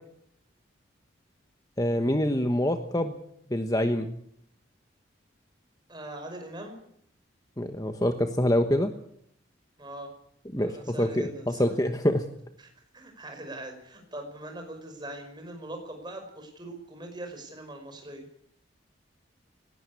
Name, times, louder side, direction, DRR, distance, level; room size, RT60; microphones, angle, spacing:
voice 1, 1.8-3.1 3.5-4.1 7.6-8.9 10.5-12.2, left 1 dB, 20° left, 7 dB, 1.2 m, -25 dB
voice 2, 5.9-6.7 9.8-10.1 10.5-11.7 12.6-18.3, right 1 dB, 20° right, 5 dB, 5.3 m, -41 dB
19.0 x 18.0 x 8.4 m, 0.69 s
head